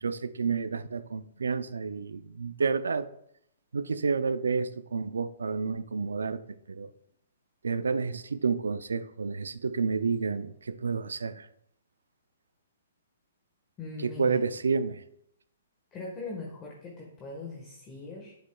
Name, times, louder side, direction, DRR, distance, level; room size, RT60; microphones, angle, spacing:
voice 1, 0.0-3.1 3.7-6.9 7.6-11.5 14.0-15.0, right 5 dB, 85° right, 14 dB, 0.5 m, -30 dB
voice 2, 13.8-14.4 15.9-18.3, left 3 dB, 25° left, -2 dB, 1.4 m, -40 dB
7.8 x 6.9 x 2.3 m, 0.72 s
hypercardioid pair, 140°, 0 cm